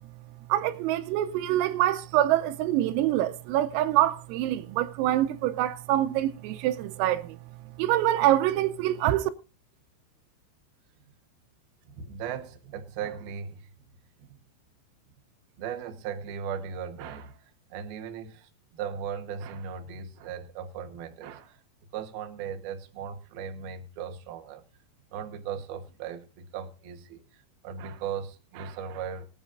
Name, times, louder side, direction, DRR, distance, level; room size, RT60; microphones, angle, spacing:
voice 1, 0.5-7.4 7.8-9.3, right 13 dB, 90° right, 3.5 m, -25 dB
voice 2, 11.9-13.7 14.2-14.4 15.6-21.6 21.9-24.6 25.1-29.3, right 7 dB, 65° right, 2.6 m, -38 dB
25.0 x 9.1 x 2.6 m
omnidirectional pair, 5.9 m